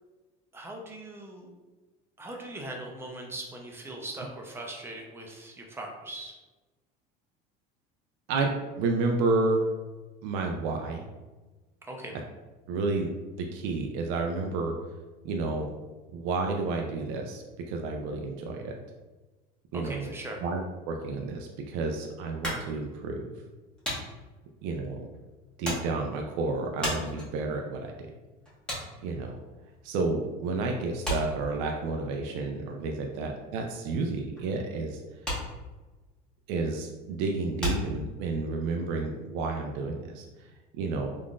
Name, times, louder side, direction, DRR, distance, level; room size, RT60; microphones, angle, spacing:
voice 1, 0.5-1.5 2.2-6.4 11.9-12.2 19.7-20.4, right 1 dB, 10° right, 0 dB, 0.5 m, -40 dB
voice 2, 8.8-9.6 10.2-11.0 12.7-13.1 13.4-14.7 15.2-15.7 16.1-18.7 19.7-20.1 20.4-20.6 20.9-23.2 24.6-25.1 25.6-27.9 29.0-29.4 29.8-35.0 36.5-40.5 40.8-41.1, right 3 dB, 75° right, 2 dB, 0.4 m, -30 dB
sound 1, 22.4-30.3 30.5-38.6, equal, 5° left, 1.1 m, -37 dB
3.6 x 2.5 x 2.3 m, 1.2 s
supercardioid pair, 125°, 19 cm